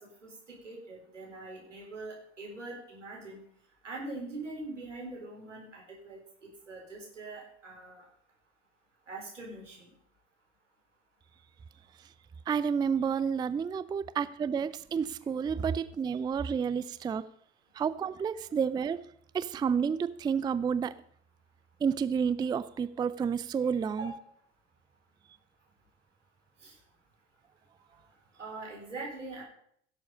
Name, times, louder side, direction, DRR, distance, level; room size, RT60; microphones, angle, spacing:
voice 1, 0.6-3.4 3.8-6.2 6.7-8.1 9.1-9.9 24.0-24.1 26.6-26.7 28.4-29.4, right 2 dB, 85° right, -2 dB, 4.3 m, -42 dB
voice 2, 12.5-17.2 17.8-19.0 19.3-20.9 21.8-24.1, right 6 dB, 10° right, 15 dB, 0.4 m, -30 dB
16.5 x 7.5 x 5.3 m, 0.65 s
figure-of-eight pair, 70°, 36 cm